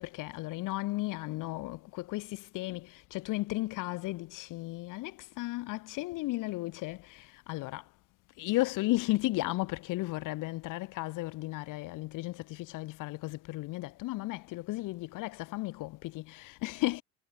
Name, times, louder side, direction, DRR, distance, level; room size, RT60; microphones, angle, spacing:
voice 1, 0.0-7.9 8.4-17.0, left 19 dB, 60° left, 7.2 m, -34 dB
cardioid pair, 155°, 35 cm